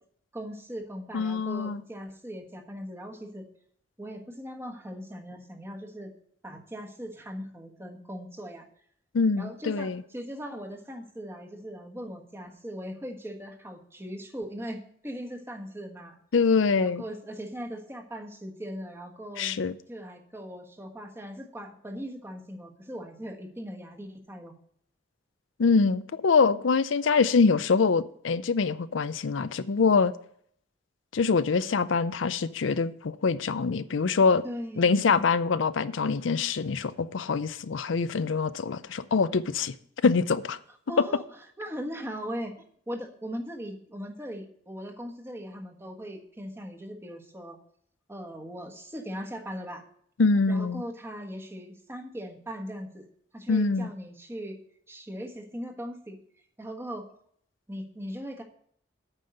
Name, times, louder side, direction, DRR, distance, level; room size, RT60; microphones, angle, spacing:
voice 1, 0.3-3.4 4.0-6.1 6.4-8.7 9.4-16.2 16.8-19.6 19.9-24.5 34.4-35.2 40.9-41.2 41.6-47.6 48.1-49.8 50.5-53.1 53.3-54.6 54.9-56.2 56.6-57.1 57.7-58.4, equal, 15° right, 1.4 m, -39 dB
voice 2, 1.1-1.8 9.1-10.0 16.3-17.0 19.4-19.8 25.6-30.1 31.1-34.4 34.8-39.8 40.0-40.6 50.2-50.8 53.5-53.9, left 4 dB, 85° left, 0.5 m, -24 dB
9.0 x 5.5 x 7.8 m
head